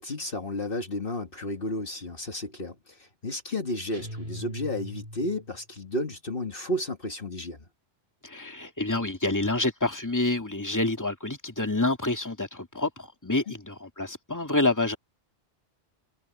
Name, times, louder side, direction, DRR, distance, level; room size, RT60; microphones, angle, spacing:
voice 1, 0.0-7.7 13.5-13.6, left 1 dB, 55° left, 2.0 m, -32 dB
sound 1, 3.9-5.6, equal, 45° right, 2.9 m, -40 dB
voice 2, 8.2-15.0, left 2 dB, 15° left, 2.4 m, -28 dB
omnidirectional pair, 1.1 m